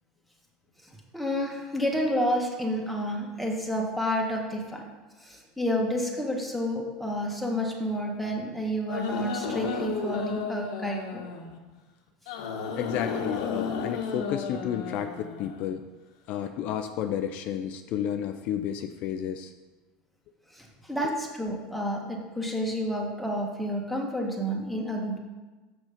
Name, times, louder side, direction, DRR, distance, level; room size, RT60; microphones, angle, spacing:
voice 1, 1.1-4.8 5.2-11.2 20.5-25.2, equal, ahead, -1 dB, 1.6 m, -30 dB
sound 1, 8.9-11.6 12.3-15.8, left 5 dB, 80° left, 1.1 m, -33 dB
voice 2, 12.8-15.9 16.3-19.5, left 9 dB, 55° left, 7 dB, 0.5 m, -31 dB
7.1 x 6.3 x 5.1 m, 1.2 s
supercardioid pair, 120°, 3 cm